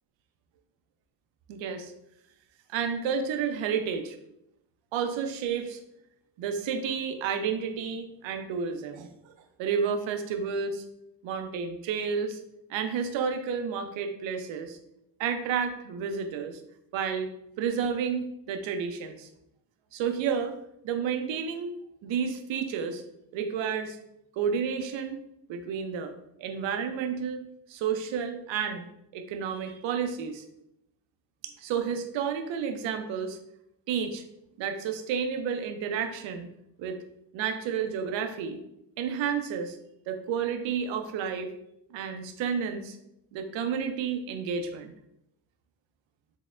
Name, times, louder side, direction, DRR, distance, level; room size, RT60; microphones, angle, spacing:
voice 1, 1.5-1.9 2.7-4.2 4.9-5.8 6.4-9.1 9.6-10.8 11.2-12.4 12.7-14.8 15.2-16.6 16.9-17.3 17.6-19.3 19.9-20.6 20.8-21.7 22.0-23.0 23.3-24.0 24.4-25.2 25.5-26.1 26.4-27.4 27.7-28.8 29.1-30.4 31.4-33.4 33.9-34.2 34.6-36.5 36.8-37.0 37.3-38.6 39.0-39.8 40.1-41.5 41.9-43.0 43.3-44.9, right 6 dB, 90° right, 7 dB, 0.6 m, -31 dB
6.2 x 2.1 x 2.4 m, 0.80 s
cardioid pair, 80°, 44 cm